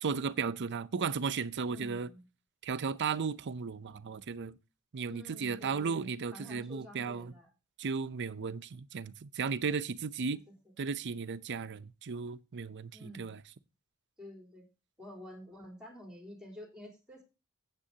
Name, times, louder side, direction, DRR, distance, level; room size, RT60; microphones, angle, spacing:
voice 1, 0.0-2.1 2.6-4.5 4.9-7.3 7.8-10.4 10.8-13.4, right 5 dB, 50° right, 0.6 m, -35 dB
voice 2, 1.7-2.3 5.1-7.5 10.3-10.6 12.9-13.4 14.2-14.6 15.0-17.2, equal, 5° right, 3.5 m, -50 dB
15.0 x 8.3 x 2.8 m
head